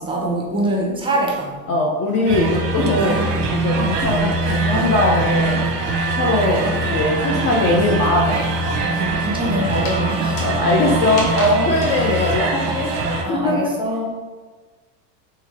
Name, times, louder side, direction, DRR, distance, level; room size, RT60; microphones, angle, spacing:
voice 1, 0.0-1.6 8.8-10.4 11.3-11.7 13.2-14.0, right 1 dB, 10° right, -2 dB, 0.7 m, -23 dB
voice 2, 1.7-3.2 3.5-5.6 6.2-8.4 9.4-9.6 10.4-11.3 11.7-12.9 13.3-13.7, left 2 dB, 30° left, -1 dB, 0.5 m, -20 dB
sound 1, 2.1-5.8 6.1-12.0, left 3 dB, 50° left, 1.1 m, -36 dB
sound 2, 2.2-13.2, right 3 dB, 50° right, 0.8 m, -22 dB
Glass, 4.5-9.5, right 4 dB, 80° left, 0.6 m, -32 dB
3.2 x 3.1 x 3.4 m, 1.4 s
hypercardioid pair, 90°, 49 cm